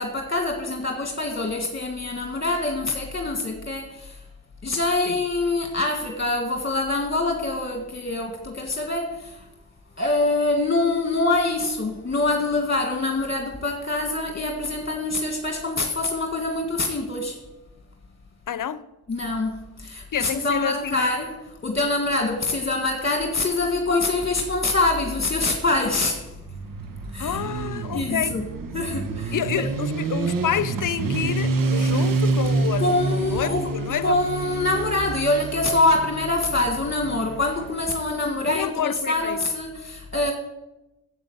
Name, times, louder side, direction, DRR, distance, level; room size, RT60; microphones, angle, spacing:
voice 1, 0.0-4.2 4.6-9.5 10.0-17.4 19.1-26.3 27.1-27.4 27.9-28.4 28.7-29.7 32.8-33.7 34.0-40.3, left 2 dB, 35° left, 1.7 m, -25 dB
voice 2, 18.5-18.8 20.1-21.1 27.2-28.4 29.3-34.2 38.5-39.4, left 9 dB, 70° left, 0.7 m, -28 dB
Motorcycle, 26.3-38.0, right 3 dB, 75° right, 1.1 m, -28 dB
9.1 x 8.0 x 7.8 m
cardioid pair, 55°, 33 cm